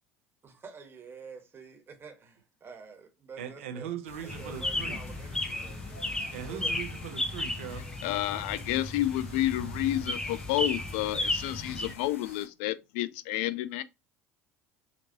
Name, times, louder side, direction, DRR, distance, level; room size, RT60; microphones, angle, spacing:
voice 1, 0.4-3.9 4.2-6.8 7.8-8.0, right 5 dB, 35° right, 1.4 m, -48 dB
voice 2, 3.4-5.0 6.3-7.9, right 9 dB, 70° right, 0.8 m, -40 dB
sound 1, 4.1-12.5, left 3 dB, 85° left, 0.7 m, -49 dB
sound 2, 4.3-11.9, left 1 dB, 10° left, 0.8 m, -34 dB
voice 3, 8.0-13.8, left 14 dB, 65° left, 0.4 m, -30 dB
5.0 x 2.9 x 2.8 m
figure-of-eight pair, 65°, 7 cm